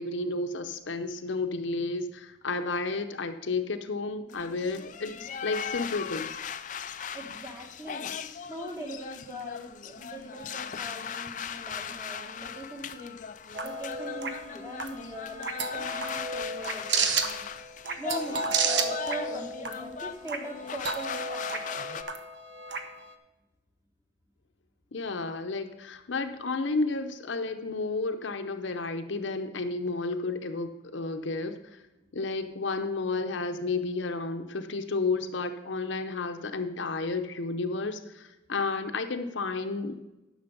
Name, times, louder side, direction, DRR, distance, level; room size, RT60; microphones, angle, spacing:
voice 1, 0.0-6.3 24.9-31.6 32.1-40.0, left 3 dB, 75° left, 7 dB, 0.7 m, -32 dB
sound 1, 4.3-22.0, left 7 dB, 40° left, 0.4 m, -39 dB
voice 2, 7.1-8.1 8.5-13.2 13.6-17.4 18.0-22.0, right 1 dB, 15° right, 0 dB, 1.8 m, -41 dB
sound 2, 13.5-23.1, right 4 dB, 65° right, 0.9 m, -32 dB
10.5 x 6.6 x 5.3 m, 1.0 s
head